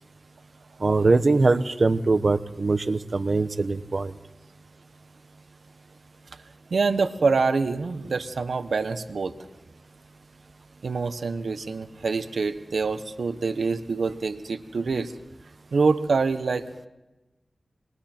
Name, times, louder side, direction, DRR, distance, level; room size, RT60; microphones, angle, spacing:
voice 1, 0.8-4.1, right 3 dB, 60° right, 12 dB, 0.9 m, -22 dB
voice 2, 6.7-9.4 10.8-15.1 15.7-16.7, right 4 dB, 90° right, 10 dB, 1.0 m, -25 dB
28.0 x 21.5 x 4.5 m, 1.0 s
wide cardioid pair, 60°, 0 cm